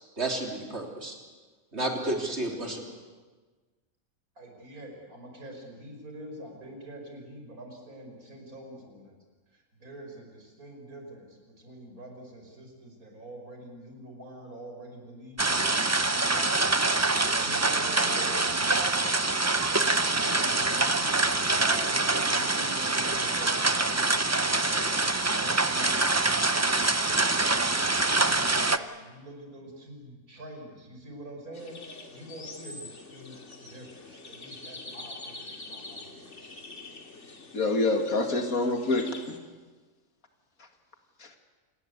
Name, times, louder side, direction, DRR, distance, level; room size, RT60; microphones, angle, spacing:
voice 1, 0.2-1.2 1.7-2.8, right 2 dB, 50° right, 1 dB, 3.9 m, -31 dB
voice 2, 2.5-2.9 4.4-9.2 9.5-15.9 16.3-16.6 16.9-19.0 19.6-36.5 36.8-36.9, right 1 dB, 90° right, 2 dB, 5.9 m, -45 dB
sound 1, 15.4-28.8, right 2 dB, 25° right, 0.4 m, -25 dB
sound 2, 31.5-39.4, left 3 dB, 55° left, 2.6 m, -45 dB
voice 3, 37.5-39.4 41.2-41.4, left 2 dB, 80° left, 5 dB, 2.8 m, -27 dB
28.0 x 19.0 x 8.3 m, 1.3 s
omnidirectional pair, 1.5 m